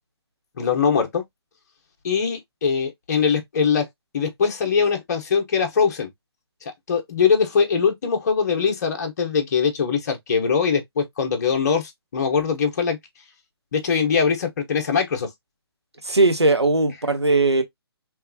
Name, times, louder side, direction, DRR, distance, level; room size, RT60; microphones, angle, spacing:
voice 1, 0.6-1.2 2.0-3.9 4.1-6.1 6.9-13.0 13.7-15.3, left 6 dB, 40° left, 1.0 m, -22 dB
voice 2, 16.0-17.6, right 3 dB, 90° right, 1.0 m, -19 dB
3.5 x 3.1 x 2.2 m
figure-of-eight pair, 140°, 14 cm